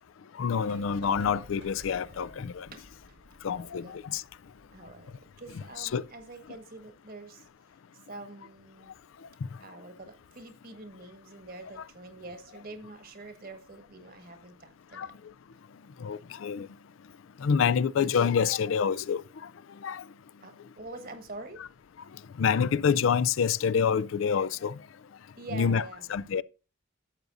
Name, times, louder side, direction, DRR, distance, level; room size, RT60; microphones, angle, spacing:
voice 1, 0.4-2.7 3.4-4.2 5.8-6.0 15.0-15.1 16.0-16.7 17.4-19.2 19.8-20.0 22.4-24.7 25.5-25.8 26.1-26.4, left 6 dB, 80° left, 0.4 m, -27 dB
sound 1, 0.6-6.6, equal, 80° right, 2.9 m, -54 dB
voice 2, 2.7-3.2 3.5-4.0 4.7-7.5 8.1-8.9 9.6-15.2 20.4-21.6 25.4-26.1, right 2 dB, 45° right, 1.5 m, -46 dB
12.0 x 7.9 x 2.6 m
head